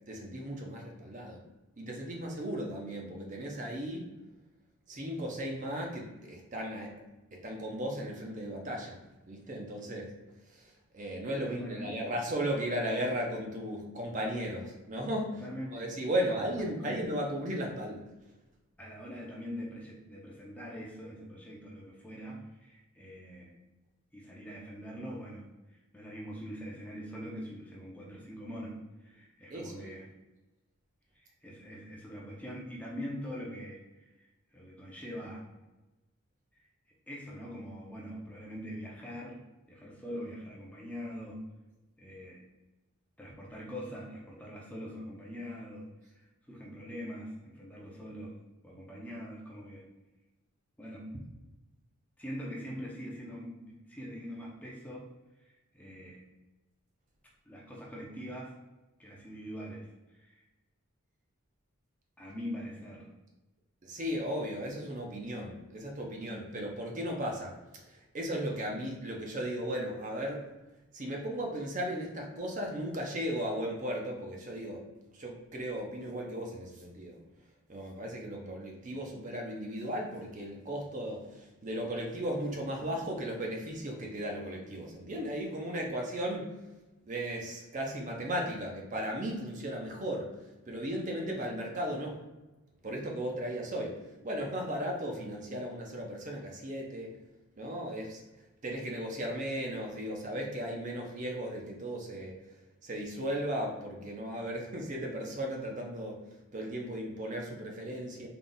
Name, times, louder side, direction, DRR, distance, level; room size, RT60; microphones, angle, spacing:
voice 1, 0.1-1.4 1.8-4.1 4.9-6.9 7.3-9.0 9.3-10.1 10.5-15.4 15.7-18.0 29.5-30.0 63.8-70.5 70.9-74.9 75.1-77.2 77.7-86.6 87.1-92.3 92.8-97.2 97.6-98.2 98.6-102.3 102.8-106.2 106.5-108.3, equal, 35° right, 0 dB, 0.6 m, -36 dB
voice 2, 11.5-12.0 15.4-17.0 18.8-23.5 24.1-30.1 31.1-34.3 34.5-35.5 37.1-39.4 39.7-41.4 42.0-42.4 43.2-45.9 46.1-48.4 48.6-49.9 50.8-51.1 52.2-55.1 55.4-56.3 57.5-58.5 59.0-60.4 62.2-63.1, equal, 5° left, -4 dB, 0.6 m, -43 dB
3.7 x 2.4 x 3.9 m, 1.1 s
head